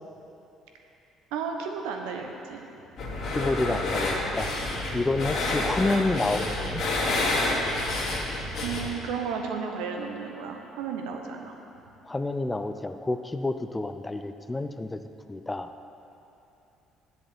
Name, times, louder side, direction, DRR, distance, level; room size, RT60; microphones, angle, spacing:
voice 1, 1.3-2.6 8.6-11.6, right 6 dB, 70° right, 3 dB, 1.0 m, -33 dB
sound 1, 3.0-8.9, left 2 dB, 55° left, 2.5 m, -28 dB
voice 2, 3.3-4.5 4.9-6.8 12.1-15.0 15.3-15.7, left 2 dB, 15° left, 9 dB, 0.6 m, -29 dB
8.0 x 7.0 x 7.8 m, 2.9 s
hypercardioid pair, 50°, 0 cm